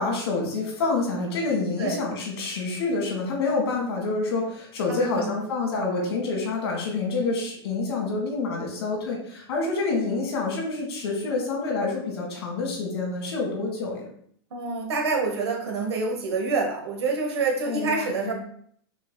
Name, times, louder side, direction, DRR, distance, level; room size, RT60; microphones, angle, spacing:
voice 1, 0.0-14.0 17.7-18.3, left 3 dB, 80° left, -1 dB, 1.7 m, -27 dB
voice 2, 4.9-5.4 14.5-18.3, right 4 dB, 90° right, 1 dB, 1.2 m, -27 dB
6.1 x 3.4 x 2.2 m, 0.63 s
hypercardioid pair, 120°, 13 cm